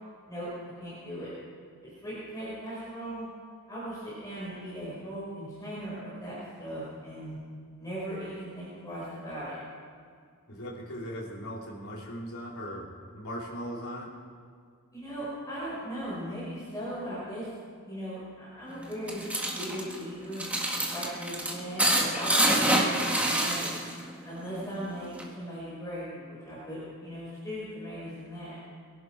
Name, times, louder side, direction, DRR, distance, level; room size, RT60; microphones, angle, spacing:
voice 1, 0.8-1.3 1.8-3.3 3.7-7.4 7.8-9.6 14.9-17.5 17.8-20.4 20.9-23.7 24.2-28.6, equal, 15° left, -9 dB, 5.3 m, -38 dB
voice 2, 10.5-14.1, equal, 70° left, -4 dB, 3.5 m, -39 dB
sound 1, 18.8-24.1 24.4-25.3, right 1 dB, 5° right, 1.7 m, -27 dB
22.5 x 11.5 x 4.7 m, 2.1 s
head